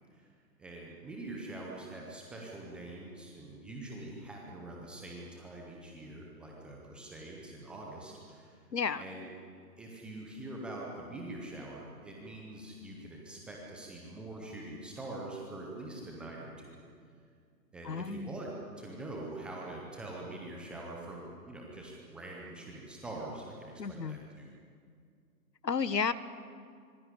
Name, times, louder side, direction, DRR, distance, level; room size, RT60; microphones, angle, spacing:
voice 1, 0.6-8.6 9.0-9.3 9.8-16.8 17.7-24.5, right 2 dB, ahead, -2 dB, 0.6 m, -44 dB
voice 2, 8.7-9.0 17.8-18.3 23.8-24.2 25.6-26.1, left 5 dB, 75° left, 14 dB, 1.6 m, -32 dB
24.5 x 22.0 x 9.7 m, 2.2 s
figure-of-eight pair, 135°, 50 cm